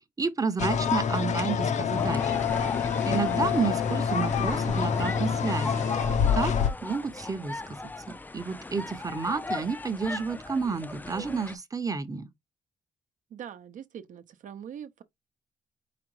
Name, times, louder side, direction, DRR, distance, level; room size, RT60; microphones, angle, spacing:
voice 1, 0.0-2.3 2.9-5.9 6.3-6.6 6.8-7.8 8.3-12.3, right 5 dB, 25° right, 0.7 m, -30 dB
sound 1, 0.6-6.7, left 7 dB, 60° left, 0.7 m, -26 dB
sound 2, 1.9-11.6, left 2 dB, 15° left, 0.4 m, -37 dB
voice 2, 13.3-15.0, right 9 dB, 70° right, 0.7 m, -42 dB
5.0 x 3.4 x 3.1 m
cardioid pair, 80°, 14 cm